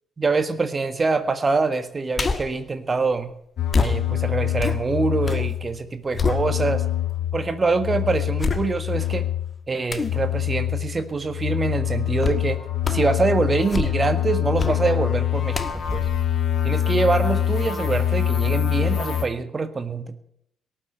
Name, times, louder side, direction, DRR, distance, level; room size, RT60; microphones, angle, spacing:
voice 1, 0.2-3.3 3.8-6.8 7.3-9.3 9.7-12.6 12.9-16.1 16.6-20.1, right 4 dB, 35° right, 10 dB, 1.6 m, -24 dB
sound 1, 2.1-2.6 3.7-5.5 5.8-6.9 7.5-7.6 8.4-9.1 9.9-10.2 12.2-12.5 12.8-13.2 13.6-14.2 14.6-14.8 15.5-17.2 17.6-17.7, left 4 dB, 35° left, 1.6 m, -28 dB
sound 2, 3.6-5.8 6.1-9.6 9.9-19.2, left 11 dB, 60° left, 2.5 m, -25 dB
18.0 x 7.6 x 9.1 m, 0.73 s
hypercardioid pair, 50°, 0 cm